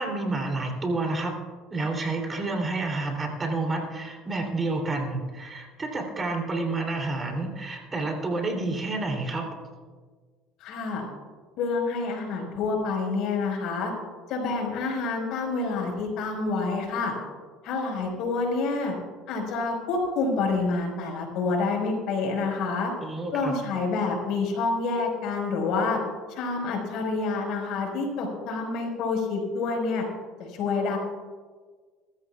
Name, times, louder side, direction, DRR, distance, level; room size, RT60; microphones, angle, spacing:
voice 1, 0.0-1.3 1.7-9.5 23.0-23.6, right 2 dB, 25° right, 2 dB, 3.1 m, -29 dB
voice 2, 10.6-11.0 11.6-13.9 14.3-17.1 17.6-18.9 19.3-22.9 23.3-26.0 26.3-30.1 30.4-31.0, left 4 dB, 70° left, 1 dB, 4.9 m, -28 dB
23.0 x 14.0 x 2.4 m, 1.5 s
supercardioid pair, 100°, 0 cm